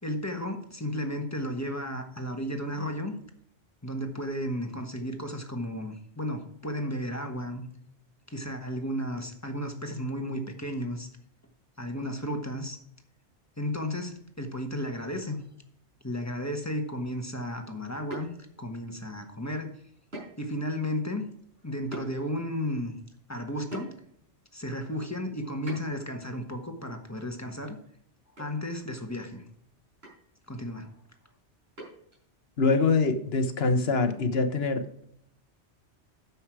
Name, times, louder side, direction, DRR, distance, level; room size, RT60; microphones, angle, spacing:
voice 1, 0.0-3.1 3.8-7.6 8.3-11.1 11.8-12.8 13.6-15.4 16.0-18.3 18.6-19.7 20.4-21.2 21.6-22.9 23.3-23.9 24.5-27.8 28.4-29.4 30.5-30.9, equal, 15° left, 4 dB, 1.3 m, -33 dB
sound 1, 18.1-18.8 20.1-20.5 20.9-21.0 21.9-22.1 23.7-24.2 25.7-26.1 27.8-28.0 28.4-28.5 28.8-28.9 30.0-30.3 31.8-32.2, right 1 dB, 65° right, 5.3 m, -41 dB
voice 2, 32.6-35.0, left 3 dB, 60° left, 9 dB, 1.2 m, -24 dB
9.9 x 7.2 x 4.7 m, 0.70 s
omnidirectional pair, 1.2 m